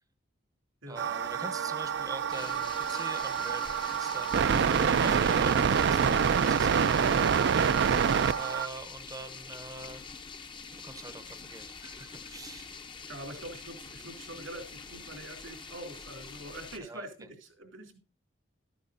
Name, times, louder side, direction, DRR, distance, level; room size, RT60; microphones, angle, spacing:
voice 1, 0.9-4.4 4.9-7.2 8.3-10.1 10.7-12.7 16.8-17.0, right 3 dB, 20° right, 11 dB, 0.7 m, -44 dB
sound 1, 1.0-8.7, right 7 dB, 60° right, 0.4 m, -26 dB
sound 2, 2.3-16.8, left 5 dB, 25° left, 0.6 m, -45 dB
voice 2, 13.1-18.0, right 1 dB, 85° right, 4 dB, 2.8 m, -44 dB
13.0 x 9.7 x 2.6 m, 0.38 s
head